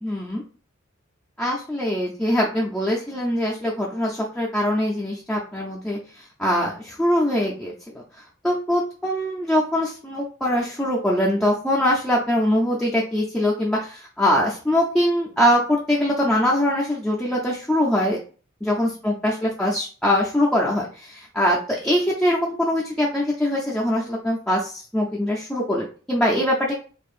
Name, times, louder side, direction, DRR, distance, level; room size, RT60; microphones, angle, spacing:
voice 1, 0.0-0.4 1.4-8.0 8.4-18.2 18.6-26.7, left 1 dB, 5° left, -5 dB, 0.5 m, -23 dB
4.4 x 2.5 x 2.4 m, 0.38 s
head